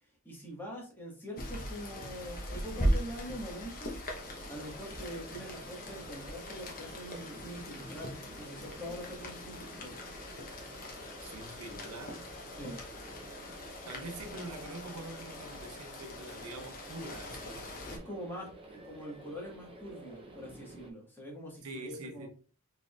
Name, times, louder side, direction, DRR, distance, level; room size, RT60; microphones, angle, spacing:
voice 1, 0.2-3.9 4.5-9.9 12.5-12.8 17.9-22.3, equal, 10° left, 1.5 m, -44 dB
Rain, 1.4-18.0, equal, 40° left, 0.9 m, -40 dB
sound 1, 4.1-20.9, right 1 dB, 25° right, 0.6 m, -51 dB
Squeak, 4.5-7.0 7.3-11.4, left 2 dB, 65° left, 1.1 m, -60 dB
voice 2, 11.2-12.3 13.6-17.8 21.6-22.3, right 2 dB, 90° right, 0.7 m, -45 dB
4.2 x 3.6 x 2.4 m
head